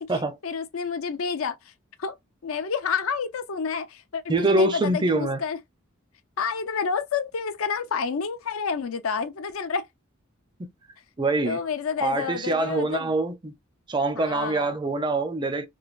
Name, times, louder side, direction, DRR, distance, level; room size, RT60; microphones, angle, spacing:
voice 1, 0.0-1.7 2.0-2.1 2.4-5.6 6.4-9.9 11.5-13.1 14.1-14.8, left 6 dB, 75° left, 0.5 m, -29 dB
voice 2, 4.3-5.4 11.2-11.6 12.0-13.5 13.9-15.7, right 2 dB, 20° right, 0.4 m, -24 dB
3.1 x 2.2 x 2.4 m
head